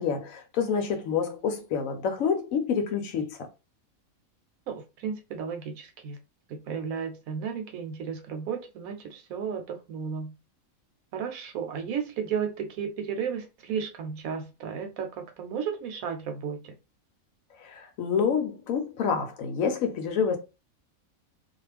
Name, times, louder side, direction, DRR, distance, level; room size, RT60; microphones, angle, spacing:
voice 1, 0.0-3.5 17.6-20.4, left 6 dB, 70° left, 1.0 m, -28 dB
voice 2, 4.7-6.2 6.5-10.3 11.1-16.7, right 7 dB, 80° right, 1.1 m, -34 dB
2.4 x 2.4 x 3.2 m
omnidirectional pair, 1.5 m